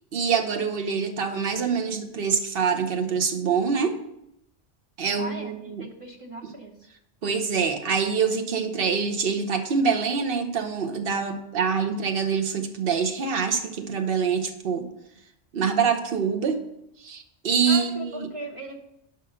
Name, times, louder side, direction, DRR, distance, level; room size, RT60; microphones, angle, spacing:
voice 1, 0.1-4.0 5.0-5.9 7.2-14.9 15.5-16.6 17.0-18.3, right 6 dB, 55° right, 6 dB, 1.0 m, -25 dB
voice 2, 5.2-6.9 17.7-18.8, equal, 30° right, 1 dB, 0.9 m, -38 dB
5.6 x 5.3 x 6.6 m, 0.80 s
omnidirectional pair, 1.2 m